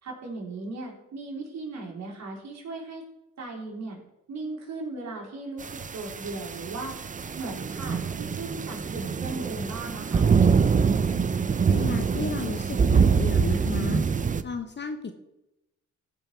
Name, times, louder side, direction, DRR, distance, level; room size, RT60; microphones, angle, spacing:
voice 1, 0.0-3.1 3.4-4.0 4.3-10.3, right 3 dB, 60° right, 0 dB, 3.5 m, -37 dB
sound 1, 5.6-14.4, right 5 dB, 25° right, 0.6 m, -25 dB
voice 2, 11.7-14.1 14.4-15.1, left 5 dB, 35° left, 8 dB, 0.9 m, -33 dB
15.0 x 5.5 x 4.5 m, 0.91 s
cardioid pair, 90°, 30 cm